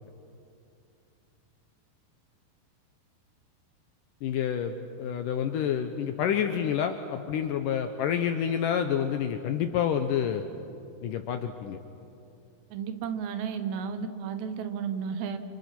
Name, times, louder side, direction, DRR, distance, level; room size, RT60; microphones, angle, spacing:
voice 1, 4.2-10.5 11.0-11.8, left 8 dB, 75° left, 7 dB, 2.0 m, -28 dB
voice 2, 12.7-15.4, right 7 dB, 90° right, 9 dB, 3.5 m, -33 dB
30.0 x 28.0 x 6.0 m, 2.7 s
omnidirectional pair, 4.8 m